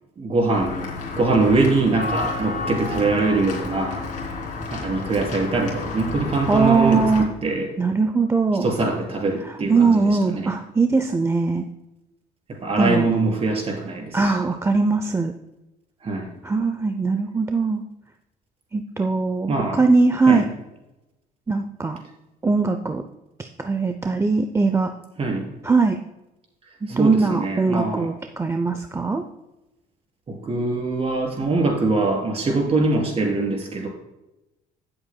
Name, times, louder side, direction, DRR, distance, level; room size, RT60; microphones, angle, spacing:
voice 1, 0.2-4.0 4.7-7.7 8.6-10.5 12.5-14.5 16.0-16.3 19.5-19.8 20.3-20.5 25.2-25.5 26.9-28.1 30.3-33.9, right 3 dB, 35° right, 0 dB, 3.6 m, -23 dB
Walk footsteps / Bell, 0.5-7.2, left 3 dB, 50° left, 3.1 m, -31 dB
voice 2, 6.5-7.3 7.8-8.7 9.4-11.7 12.8-13.1 14.1-15.3 16.4-17.8 18.7-19.5 19.8-20.5 21.5-22.0 22.4-23.0 23.4-24.9 25.6-26.0 26.9-29.2, right 4 dB, 15° right, 7 dB, 0.5 m, -20 dB
16.5 x 7.8 x 2.2 m, 0.98 s
cardioid pair, 110°, 17 cm